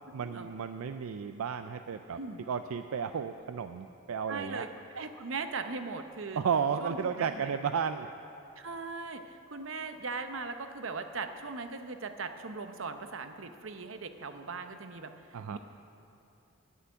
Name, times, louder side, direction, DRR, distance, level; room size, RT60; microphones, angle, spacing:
voice 1, 0.1-2.2 2.5-4.7 6.4-8.1 15.3-15.6, right 6 dB, 85° right, 9 dB, 0.4 m, -33 dB
voice 2, 4.3-4.7 4.9-6.4 6.8-7.5 8.6-15.6, right 4 dB, 65° right, 8 dB, 0.8 m, -39 dB
9.9 x 8.3 x 9.7 m, 2.9 s
head